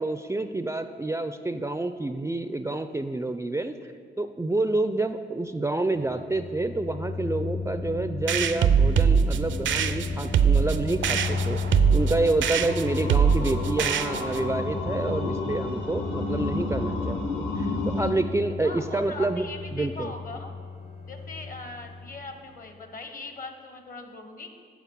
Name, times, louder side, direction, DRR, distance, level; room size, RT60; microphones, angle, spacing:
voice 1, 0.0-3.9 4.2-19.4 19.7-20.1, right 2 dB, 15° right, 9 dB, 0.4 m, -28 dB
sound 1, 5.9-22.7, left 3 dB, 30° left, 0.6 m, -34 dB
sound 2, 8.3-14.5, right 7 dB, 75° right, 0.4 m, -23 dB
sound 3, 11.3-18.1, left 3 dB, 70° left, 1.1 m, -32 dB
voice 2, 13.2-13.8 18.6-20.5 21.1-24.5, left 3 dB, 45° left, 6 dB, 1.0 m, -41 dB
8.3 x 4.2 x 7.0 m, 2.2 s
cardioid pair, 60°, 20 cm